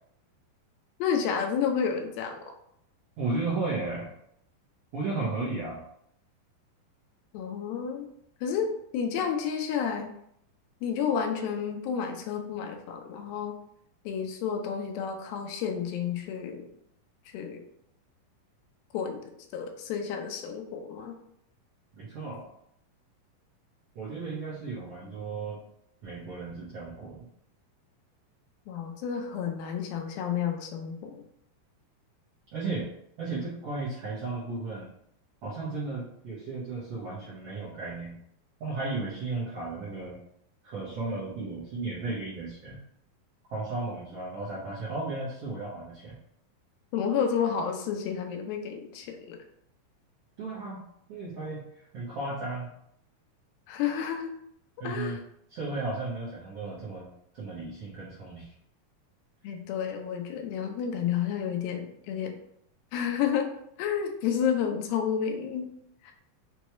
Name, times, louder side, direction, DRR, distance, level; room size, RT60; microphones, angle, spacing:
voice 1, 1.0-2.4 7.3-8.1 8.4-10.1 10.8-13.6 14.1-16.7 17.3-17.6 18.9-19.2 19.5-21.1 28.7-31.2 46.9-49.4 53.7-54.3 54.8-55.2 59.4-62.4 62.9-63.5 63.8-65.7 66.0-66.1, left 7 dB, 85° left, 4 dB, 2.4 m, -30 dB
voice 2, 3.2-4.1 4.9-5.8 21.9-22.5 23.9-25.6 26.0-27.3 32.5-32.9 33.2-34.9 35.4-38.1 38.6-40.2 40.6-42.8 43.5-46.2 50.4-50.8 51.1-51.6 51.9-52.7 54.8-55.2 55.5-58.5, right 3 dB, 75° right, -9 dB, 1.4 m, -34 dB
6.1 x 2.3 x 3.0 m, 0.72 s
omnidirectional pair, 4.2 m